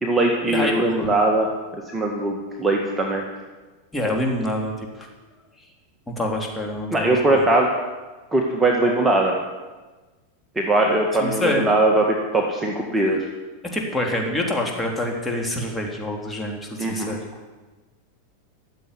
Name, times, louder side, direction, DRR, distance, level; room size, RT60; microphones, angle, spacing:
voice 1, 0.0-1.5 1.7-3.2 6.9-7.7 8.3-9.4 10.6-13.2 16.8-17.2, right 2 dB, 15° right, 0 dB, 1.9 m, -20 dB
voice 2, 3.9-5.1 6.1-7.4 11.2-11.6 13.6-17.2, left 1 dB, 10° left, 0 dB, 3.2 m, -26 dB
14.0 x 7.7 x 9.9 m, 1.2 s
hypercardioid pair, 115°, 0 cm